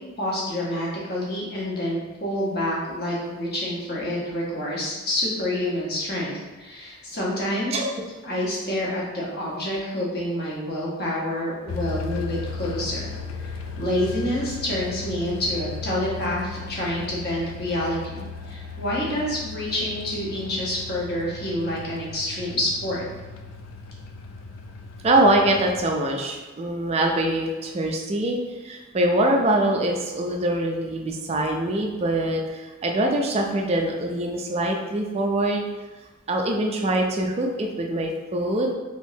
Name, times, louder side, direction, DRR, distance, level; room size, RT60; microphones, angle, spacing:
voice 1, 0.2-7.8 8.2-13.1 13.4-23.0, left 1 dB, 50° left, -5 dB, 0.9 m, -28 dB
sound 1, 11.7-25.8, left 4 dB, 85° left, 0.3 m, -36 dB
voice 2, 25.0-35.6 36.3-38.7, right 1 dB, 30° right, 2 dB, 0.3 m, -23 dB
3.5 x 2.9 x 2.7 m, 1.2 s
head